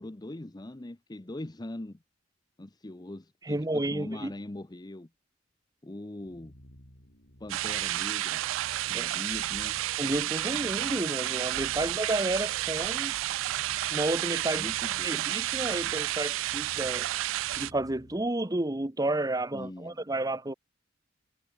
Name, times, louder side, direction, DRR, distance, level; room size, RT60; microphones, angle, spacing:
voice 1, 0.0-2.0 2.6-5.1 5.8-6.5 7.4-8.4 8.8-9.8 14.5-15.3 19.5-20.0, left 1 dB, 20° left, 0.7 m, -41 dB
voice 2, 3.4-4.3 8.9-9.1 10.0-13.2 13.9-14.7 15.0-17.1 17.6-20.5, right 2 dB, 20° right, 1.0 m, -31 dB
sound 1, 6.2-18.3, equal, 65° left, 5.5 m, -54 dB
sound 2, 7.5-17.7, right 15 dB, 90° right, 0.3 m, -31 dB
head